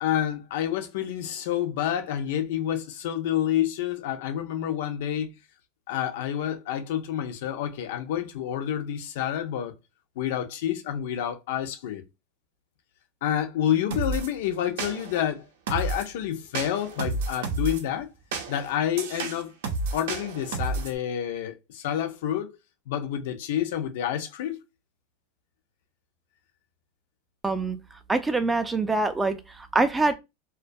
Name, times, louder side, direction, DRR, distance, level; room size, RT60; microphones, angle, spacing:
voice 1, 0.0-5.3 5.9-9.7 10.2-12.0 13.2-18.1 18.5-19.5 19.9-22.5 22.9-24.6, left 10 dB, 75° left, 0.4 m, -28 dB
sound 1, 13.9-14.3 14.8-15.2 15.7-16.1 16.5-17.8 18.3-21.0, right 3 dB, 80° right, 0.5 m, -31 dB
voice 2, 27.4-27.8 28.1-30.1, right 3 dB, 10° right, 0.3 m, -24 dB
2.2 x 2.2 x 2.6 m
supercardioid pair, 135°, 0 cm